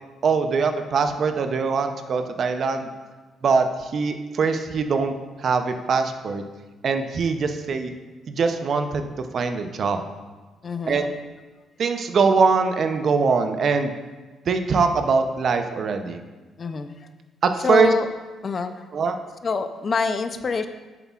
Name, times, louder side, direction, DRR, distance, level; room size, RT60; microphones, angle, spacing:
voice 1, 0.2-2.9 3.4-6.4 6.8-7.9 8.3-10.0 10.9-11.0 11.8-13.9 14.5-16.2 17.4-17.9 18.9-19.2, right 5 dB, 55° right, 7 dB, 0.6 m, -22 dB
voice 2, 10.6-11.1 16.6-17.1 17.6-18.1 18.4-18.8 19.4-20.7, left 4 dB, 40° left, 10 dB, 0.5 m, -26 dB
8.3 x 6.9 x 2.4 m, 1.3 s
cardioid pair, 90°, 0 cm